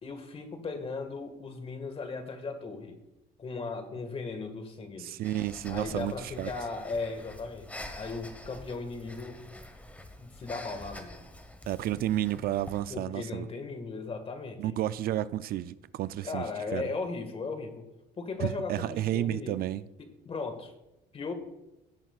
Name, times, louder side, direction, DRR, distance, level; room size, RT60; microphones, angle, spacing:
voice 1, 0.0-3.0 3.4-5.1 5.7-9.4 10.2-11.2 12.9-14.8 16.2-17.9 18.2-19.6 20.0-20.7 21.1-21.3, left 4 dB, 35° left, 1.7 m, -37 dB
voice 2, 5.0-6.5 11.7-13.5 14.6-16.4 16.7-16.9 18.4-19.8, right 13 dB, 60° right, 0.4 m, -31 dB
Breathing, 5.2-12.9, left 1 dB, 10° left, 1.3 m, -46 dB
16.5 x 9.0 x 2.4 m
cardioid pair, 110°, 17 cm